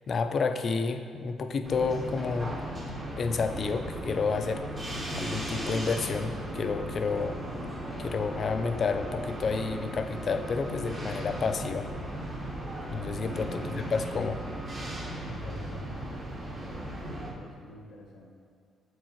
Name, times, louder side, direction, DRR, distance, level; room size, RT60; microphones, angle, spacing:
voice 1, 0.1-2.5 3.2-4.6 5.2-7.4 8.0-11.9 12.9-14.4, left 4 dB, 50° left, 8 dB, 0.4 m, -30 dB
sound 1, 1.6-17.3, right 1 dB, 40° right, 1.3 m, -37 dB
voice 2, 13.4-13.7 15.2-18.3, left 1 dB, 70° left, 0 dB, 0.7 m, -49 dB
7.2 x 4.6 x 2.9 m, 2.2 s
cardioid pair, 90°, 0 cm